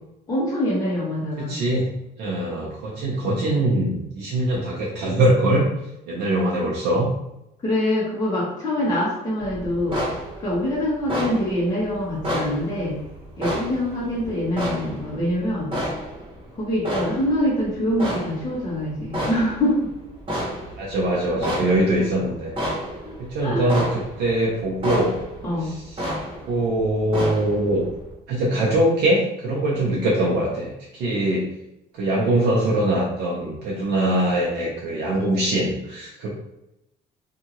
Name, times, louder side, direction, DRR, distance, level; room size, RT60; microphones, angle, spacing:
voice 1, 0.3-1.6 7.6-13.0 13.4-15.7 16.6-19.9 23.4-23.6 25.4-25.7, left 1 dB, 20° left, -7 dB, 1.0 m, -24 dB
voice 2, 1.4-1.9 2.2-5.7 6.1-7.1 14.0-14.3 20.8-22.5 23.2-25.2 25.6-26.0 26.5-27.9 28.3-31.5 31.9-36.3, right 1 dB, 80° right, -5 dB, 0.7 m, -22 dB
sound 1, 9.4-16.6 16.8-28.1, equal, 30° right, 1.2 m, -31 dB
2.7 x 2.5 x 2.9 m, 0.86 s
cardioid pair, 110°, 17 cm